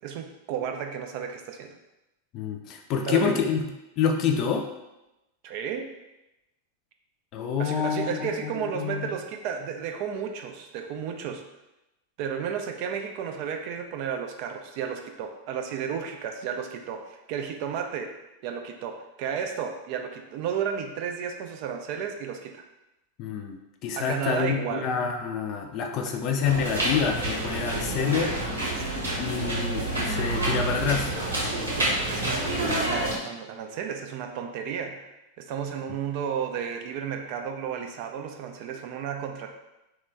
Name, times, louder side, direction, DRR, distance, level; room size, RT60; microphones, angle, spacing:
voice 1, 0.0-1.7 3.1-3.4 5.4-5.9 7.6-11.4 12.2-18.2 18.4-22.6 23.9-24.9 28.7-29.0 30.3-30.7 31.6-35.1 35.4-39.5, right 7 dB, 45° right, 4 dB, 0.3 m, -33 dB
voice 2, 2.3-3.6 4.0-4.6 7.3-9.1 23.2-28.3 29.2-31.1, left 6 dB, 35° left, 4 dB, 0.4 m, -27 dB
sound 1, 26.4-33.1, right 1 dB, 80° right, 0.9 m, -28 dB
3.0 x 2.2 x 3.3 m, 0.94 s
figure-of-eight pair, 90°, 0 cm